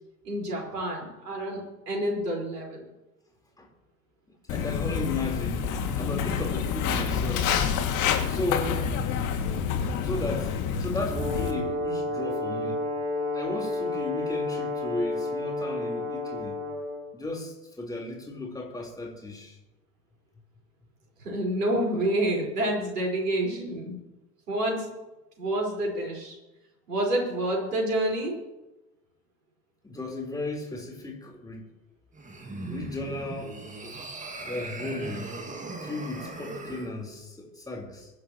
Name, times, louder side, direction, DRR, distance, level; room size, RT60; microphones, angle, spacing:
voice 1, 0.2-2.8 21.2-24.0 24.5-24.9 25.4-26.4 26.9-28.4, right 1 dB, 75° right, -1 dB, 5.0 m, -28 dB
Walk footsteps, 4.5-11.5, left 7 dB, 40° left, 2.4 m, -28 dB
voice 2, 4.5-5.7 6.0-7.5 8.2-8.9 10.0-10.5 10.8-12.8 13.3-16.6 17.1-19.6 29.8-31.7 32.7-33.6 33.8-33.9 34.5-35.4 35.8-38.1, left 2 dB, 10° left, -1 dB, 4.1 m, -35 dB
Brass instrument, 11.1-17.1, left 2 dB, 55° right, 3.1 m, -31 dB
sound 1, 32.1-36.9, right 2 dB, 15° right, 2.1 m, -39 dB
23.5 x 11.0 x 3.1 m, 1.0 s
figure-of-eight pair, 80°, 47 cm